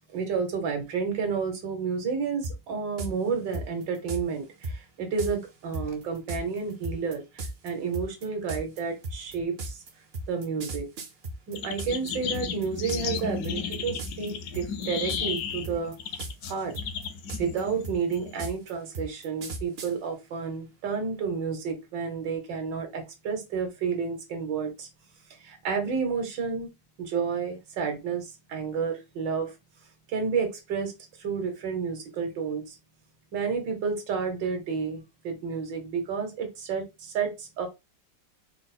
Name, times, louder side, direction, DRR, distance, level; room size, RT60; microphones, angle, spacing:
voice 1, 0.1-9.8 10.3-10.9 11.5-15.9 16.4-16.7 17.4-24.9 25.4-26.7 27.0-29.5 30.1-30.9 31.2-32.7 33.3-37.7, right 5 dB, 80° right, 1.7 m, -31 dB
sound 1, 2.4-2.6 3.0-3.1 3.5-4.2 4.6-4.8 5.2-5.3 5.7-12.1 12.3-13.2 13.4-13.7 14.0-14.3 14.5-15.4 15.6-16.5 16.7-19.9, right 2 dB, 60° right, 0.6 m, -35 dB
sound 2, 11.5-18.5, left 7 dB, 70° left, 0.9 m, -34 dB
3.9 x 2.0 x 4.1 m
omnidirectional pair, 1.9 m